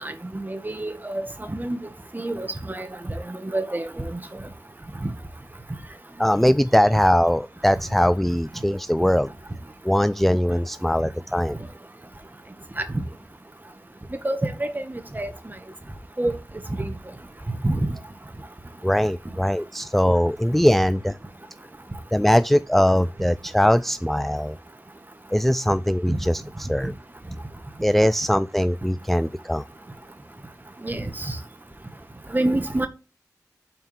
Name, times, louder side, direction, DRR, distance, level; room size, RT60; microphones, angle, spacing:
voice 1, 0.0-1.8 2.1-2.9 3.3-4.2 5.0-5.1 12.8-13.0 14.2-15.3 16.2-16.3 16.8-16.9 17.6-17.9 26.1-26.2 30.8-31.4 32.3-32.9, right 1 dB, 30° right, 1.6 m, -27 dB
voice 2, 6.2-9.3 9.8-11.6 18.8-21.2 22.1-24.6 25.3-26.9 27.8-29.6, equal, 5° left, 0.4 m, -21 dB
5.9 x 4.4 x 5.8 m
cardioid pair, 45°, 7 cm